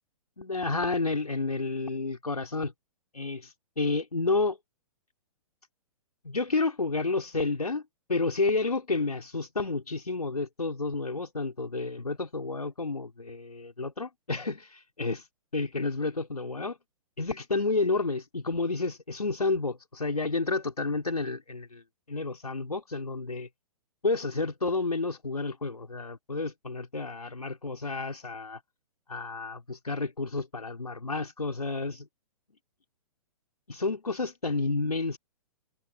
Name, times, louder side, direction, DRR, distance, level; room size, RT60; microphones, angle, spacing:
voice 1, 0.4-2.7 3.1-4.6 6.2-7.8 8.1-15.2 15.5-16.8 17.2-21.8 22.1-23.5 24.0-28.6 29.1-32.1 33.7-35.2, left 3 dB, 85° left, 4.0 m, -30 dB
figure-of-eight pair, 120°, 19 cm